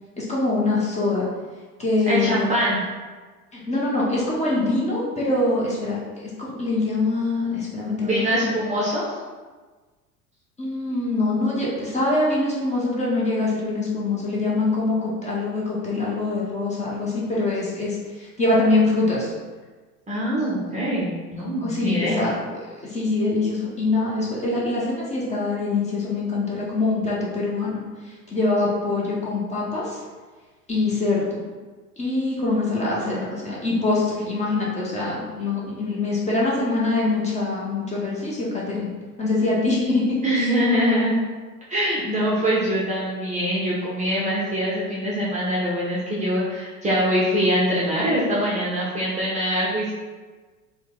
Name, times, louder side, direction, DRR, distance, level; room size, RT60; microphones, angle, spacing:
voice 1, 0.2-1.3 1.8-2.6 3.5-8.5 10.6-19.3 21.6-22.6 22.9-27.8 28.3-30.0 30.7-31.4 32.0-38.9 39.2-40.5, left 2 dB, 15° left, -5 dB, 0.9 m, -24 dB
voice 2, 2.1-2.8 8.0-9.0 20.1-22.3 33.0-33.5 40.2-41.1 41.7-49.9, equal, 15° right, -6 dB, 0.8 m, -23 dB
4.3 x 2.3 x 3.7 m, 1.4 s
figure-of-eight pair, 80°, 47 cm